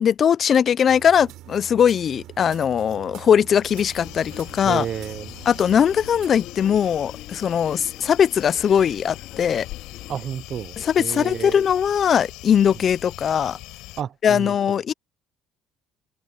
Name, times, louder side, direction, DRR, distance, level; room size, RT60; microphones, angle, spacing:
voice 1, 0.0-4.9 5.5-9.7 10.8-13.6 14.2-14.9, left 8 dB, 35° left, 0.4 m, -20 dB
sound 1, 0.9-6.3, right 14 dB, 65° right, 6.1 m, -44 dB
sound 2, 3.6-14.0, left 19 dB, 80° left, 7.0 m, -41 dB
sound 3, 4.0-10.2, left 12 dB, 60° left, 3.3 m, -44 dB
voice 2, 4.6-5.3 10.1-11.6 14.0-14.5, right 9 dB, 40° right, 0.6 m, -31 dB
cardioid pair, 160°, 0 cm